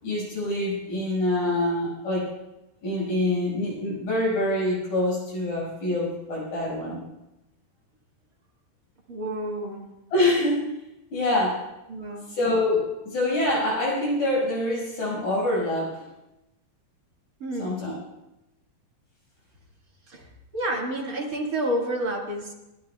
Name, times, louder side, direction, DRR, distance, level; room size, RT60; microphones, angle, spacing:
voice 1, 0.0-2.3 2.8-7.0 10.1-10.6 11.1-11.6 12.3-16.1 17.6-17.9, left 1 dB, 55° left, -5 dB, 7.0 m, -25 dB
voice 2, 9.1-9.9 11.9-12.4 17.4-17.9 20.1-22.5, right 1 dB, 35° right, -2 dB, 1.5 m, -30 dB
29.0 x 12.0 x 2.3 m, 0.94 s
omnidirectional pair, 4.5 m